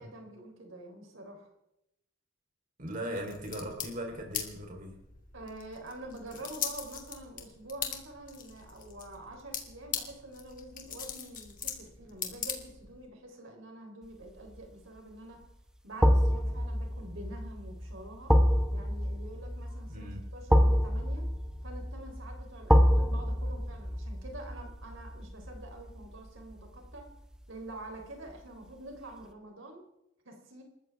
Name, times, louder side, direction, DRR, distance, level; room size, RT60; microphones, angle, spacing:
voice 1, 0.0-1.5 5.3-15.5 15.8-18.4 18.7-21.3 21.6-27.0 27.5-29.9 30.3-30.6, right 1 dB, 75° right, 2 dB, 3.6 m, -47 dB
voice 2, 2.8-5.0 19.9-20.2, right 1 dB, 45° right, 1 dB, 3.6 m, -38 dB
sound 1, 3.1-13.1, left 8 dB, 45° left, 2.6 m, -41 dB
sound 2, 14.2-14.6 16.0-27.0 27.3-27.5, equal, 5° right, 1.1 m, -27 dB
29.0 x 14.0 x 3.5 m, 0.85 s
head